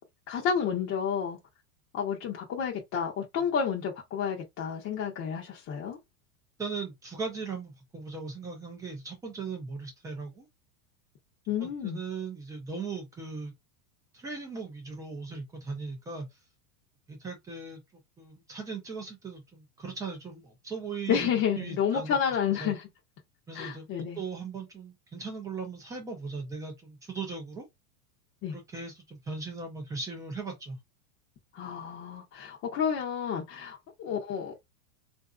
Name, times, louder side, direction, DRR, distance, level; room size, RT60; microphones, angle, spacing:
voice 1, 0.3-1.4 1.9-6.0 11.5-12.0 21.1-22.8 23.5-24.2 28.4-28.6 31.5-34.5, left 7 dB, 30° left, 0.7 m, -30 dB
voice 2, 6.6-10.5 11.6-13.5 14.1-16.3 17.1-17.8 18.2-22.2 22.6-22.7 23.5-27.7 28.5-30.8, right 4 dB, 10° right, 0.4 m, -38 dB
3.7 x 2.6 x 2.3 m
supercardioid pair, 145°, 46 cm